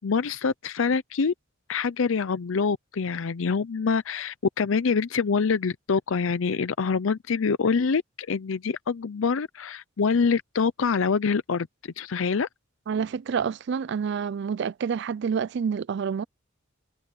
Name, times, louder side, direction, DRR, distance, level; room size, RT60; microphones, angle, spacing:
voice 1, 0.0-1.3 1.7-12.5, left 5 dB, 75° left, 0.5 m, -25 dB
voice 2, 12.9-16.2, right 6 dB, 55° right, 0.4 m, -28 dB
head